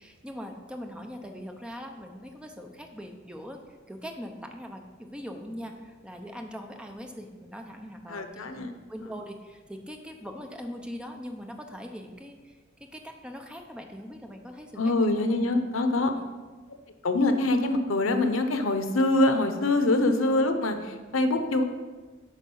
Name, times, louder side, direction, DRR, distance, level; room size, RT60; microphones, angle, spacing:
voice 1, 0.0-3.6 3.9-15.3 16.0-16.1, equal, 5° right, 4 dB, 0.7 m, -41 dB
voice 2, 8.1-8.7 14.8-16.1 17.0-21.6, left 2 dB, 85° left, 7 dB, 0.8 m, -24 dB
8.3 x 5.5 x 5.5 m, 1.3 s
head